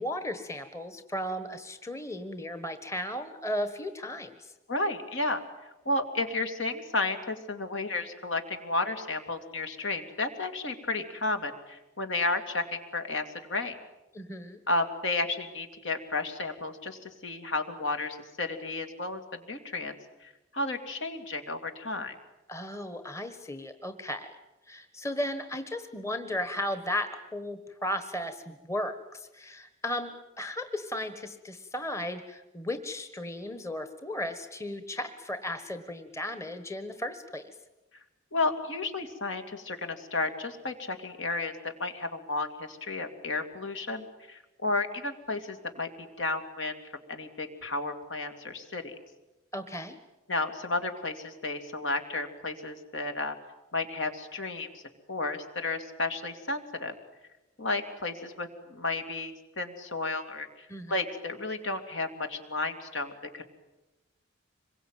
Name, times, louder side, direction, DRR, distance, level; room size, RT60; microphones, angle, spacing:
voice 1, 0.0-4.5 14.1-14.6 22.5-24.3 24.7-37.5 49.5-49.9 60.7-60.9, left 1 dB, 15° left, 9 dB, 1.3 m, -35 dB
voice 2, 4.7-5.4 5.8-13.2 13.5-13.8 14.7-19.9 20.2-22.1 38.3-41.5 41.8-46.8 47.1-48.9 50.3-53.4 53.7-54.7 55.1-56.9 57.6-63.4, left 2 dB, 65° left, 6 dB, 2.9 m, -32 dB
26.0 x 22.5 x 9.2 m, 1.0 s
head